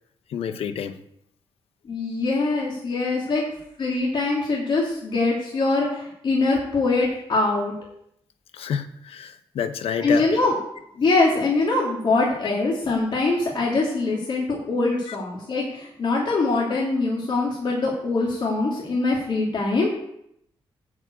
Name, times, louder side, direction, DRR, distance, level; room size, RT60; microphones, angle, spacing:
voice 1, 0.3-1.0 8.5-10.3 15.1-15.2, left 8 dB, 85° left, 10 dB, 0.9 m, -28 dB
voice 2, 1.8-3.4 3.8-7.7 10.0-10.5 11.0-20.0, left 3 dB, 55° left, -3 dB, 2.7 m, -23 dB
9.5 x 5.3 x 8.2 m, 0.74 s
cardioid pair, 100°, 10 cm